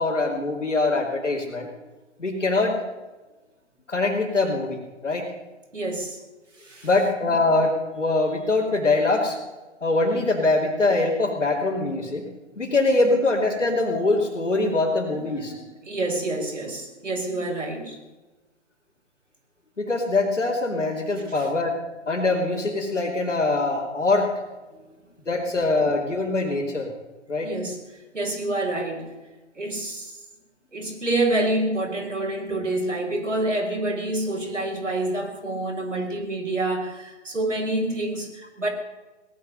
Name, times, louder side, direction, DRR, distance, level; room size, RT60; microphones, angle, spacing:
voice 1, 0.0-1.7 2.2-2.8 3.9-5.3 6.8-9.4 9.8-12.2 12.6-15.5 19.8-21.8 22.1-24.3 25.3-26.9 27.3-27.5 33.1-33.2, left 2 dB, 85° left, -5 dB, 3.2 m, -23 dB
voice 2, 5.7-6.2 6.6-6.9 15.1-18.0 21.3-21.5 24.7-24.9 27.4-29.1 29.5-30.2 30.7-38.7, right 2 dB, 85° right, 2 dB, 4.6 m, -28 dB
18.0 x 11.0 x 6.6 m, 1.2 s
figure-of-eight pair, 130°, 36 cm